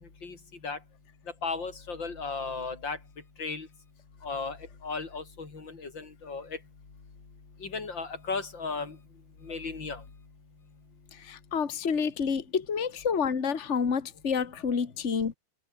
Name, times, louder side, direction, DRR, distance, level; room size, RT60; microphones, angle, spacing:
voice 1, 1.4-3.0 3.4-3.7 4.2-4.6 4.8-6.5 7.6-9.0 9.4-10.0, left 4 dB, 30° left, 4.0 m, -35 dB
voice 2, 11.2-15.3, left 6 dB, 85° left, 0.6 m, -29 dB
omnidirectional pair, 4.3 m